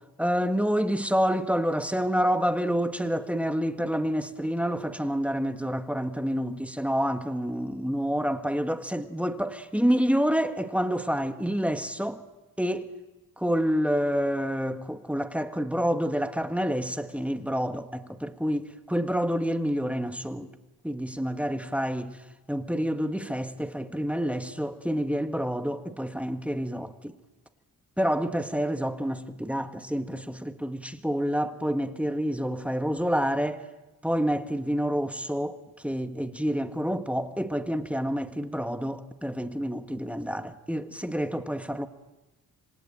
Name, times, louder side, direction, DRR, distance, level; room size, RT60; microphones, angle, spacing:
voice 1, 0.2-12.2 12.6-12.9 13.4-20.5 20.8-22.2 22.5-27.1 28.0-33.6 34.0-35.6 35.8-41.9, equal, 5° right, 1.8 m, -28 dB
27.0 x 24.0 x 8.9 m
cardioid pair, 80°, 36 cm